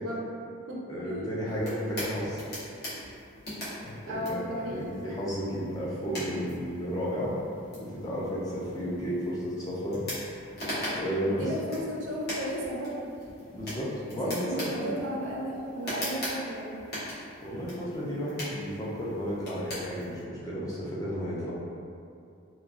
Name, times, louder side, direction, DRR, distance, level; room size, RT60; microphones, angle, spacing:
voice 1, 0.0-0.3 0.7-1.3 4.1-4.9 11.2-13.0 14.2-16.8, equal, 80° right, -4 dB, 0.5 m, -35 dB
voice 2, 0.9-2.4 3.8-7.3 7.7-10.0 10.9-11.5 13.5-14.9 17.4-21.6, equal, 20° left, -7 dB, 0.4 m, -33 dB
sound 1, 1.5-20.2, equal, 55° left, 1.0 m, -41 dB
2.9 x 2.2 x 2.4 m, 2.5 s
head